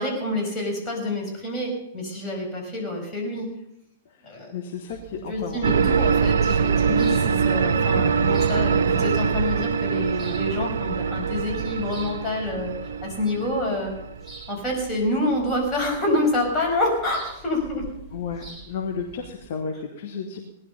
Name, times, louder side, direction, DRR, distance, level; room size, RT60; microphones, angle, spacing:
voice 1, 0.0-3.5 4.2-4.5 5.3-13.9 14.5-17.8, left 1 dB, 20° left, -2 dB, 6.0 m, -27 dB
voice 2, 4.5-5.6 18.1-20.5, left 5 dB, 50° left, 3 dB, 1.7 m, -33 dB
sound 1, 4.9-19.5, right 5 dB, ahead, 4.0 m, -46 dB
sound 2, 5.6-14.5, right 6 dB, 60° right, 0.7 m, -23 dB
18.5 x 11.0 x 5.6 m, 0.79 s
figure-of-eight pair, 105°, 0 cm